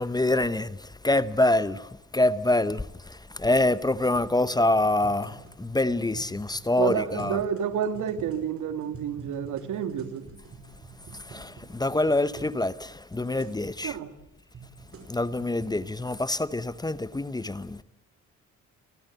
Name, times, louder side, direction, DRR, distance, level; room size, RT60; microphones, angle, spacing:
voice 1, 0.0-7.4 11.2-14.0 15.1-17.8, left 2 dB, 15° left, 0.8 m, -26 dB
sound 1, 4.5-12.6 12.8-12.9 13.1-13.6 14.2-15.8, right 5 dB, 50° right, 5.2 m, -46 dB
voice 2, 6.8-10.2 13.8-14.1, right 8 dB, 80° right, 2.0 m, -29 dB
29.5 x 13.5 x 8.1 m
cardioid pair, 90°, 30 cm